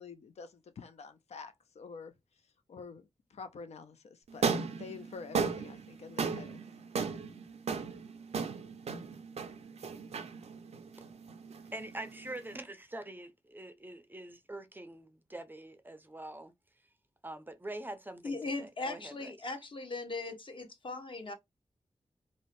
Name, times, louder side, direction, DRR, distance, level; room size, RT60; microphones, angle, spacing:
voice 1, 0.0-2.2 2.7-4.5 4.7-6.6, left 5 dB, 85° left, 0.4 m, -48 dB
sound 1, 4.3-12.6, right 5 dB, 75° right, 0.4 m, -36 dB
voice 2, 11.7-16.5 17.2-19.3, right 1 dB, 20° right, 0.4 m, -44 dB
voice 3, 18.2-21.3, left 3 dB, 50° left, 0.7 m, -39 dB
2.6 x 2.0 x 3.0 m
wide cardioid pair, 80°, 11 cm